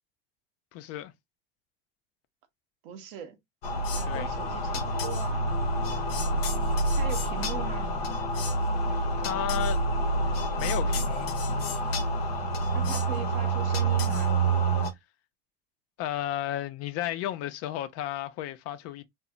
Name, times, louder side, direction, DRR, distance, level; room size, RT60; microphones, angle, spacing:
voice 1, 0.7-1.1 4.1-4.3 9.2-9.8 10.6-11.4 16.0-19.0, left 12 dB, 55° left, 0.5 m, -33 dB
voice 2, 2.8-3.4 3.9-5.5 6.9-7.9 12.7-14.4, right 7 dB, 75° right, 0.8 m, -40 dB
sound 1, 3.6-14.9, right 2 dB, 85° left, 0.7 m, -27 dB
2.1 x 2.0 x 3.7 m
supercardioid pair, 95°, 29 cm